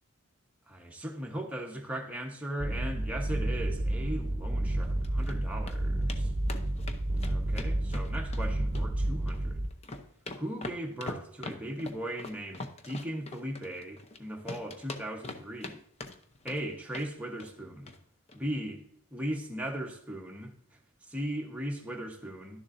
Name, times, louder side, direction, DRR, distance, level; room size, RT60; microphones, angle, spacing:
voice 1, 0.7-6.3 7.2-9.6 10.4-15.8 16.4-17.9 18.3-18.8 19.1-20.5 21.0-22.6, right 1 dB, 5° right, 1.1 m, -38 dB
sound 1, 2.6-9.7, right 1 dB, 35° right, 0.9 m, -30 dB
sound 2, 4.8-5.4 5.7-5.8 6.1-6.2 6.5-8.4 8.7-9.4 9.7-14.2 14.5-15.7 16.0-16.6 16.9-17.1 17.4-17.6 17.9-18.0 18.3-18.4, left 2 dB, 30° left, 0.7 m, -42 dB
11.5 x 7.0 x 2.6 m
head